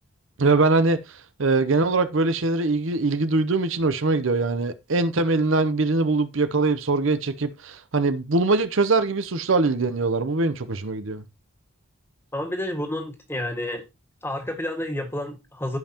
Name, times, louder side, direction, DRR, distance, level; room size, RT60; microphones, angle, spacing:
voice 1, 0.4-11.2, right 3 dB, 65° right, 0.7 m, -22 dB
voice 2, 12.3-13.8 14.2-15.8, left 1 dB, 10° left, 1.8 m, -30 dB
15.0 x 5.5 x 2.9 m
head